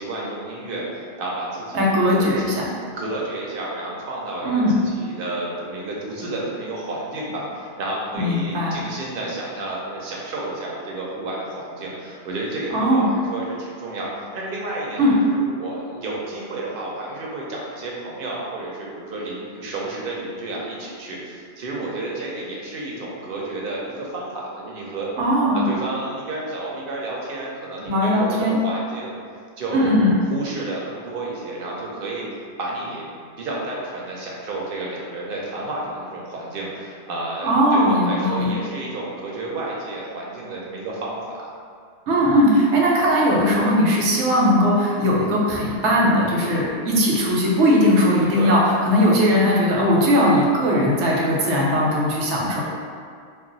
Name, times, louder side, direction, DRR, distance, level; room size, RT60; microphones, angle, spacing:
voice 1, 0.0-2.4 2.9-14.1 14.3-25.1 25.5-29.1 29.6-30.0 30.3-33.1 33.4-41.5 48.3-48.5, right 2 dB, 60° right, -4 dB, 0.7 m, -31 dB
voice 2, 1.7-2.7 4.4-4.8 8.1-8.8 12.7-13.0 15.0-15.2 25.2-25.6 27.9-28.6 29.7-30.2 37.4-38.5 42.1-52.6, equal, 80° right, -3 dB, 0.9 m, -19 dB
2.3 x 2.1 x 3.8 m, 2.2 s
omnidirectional pair, 1.2 m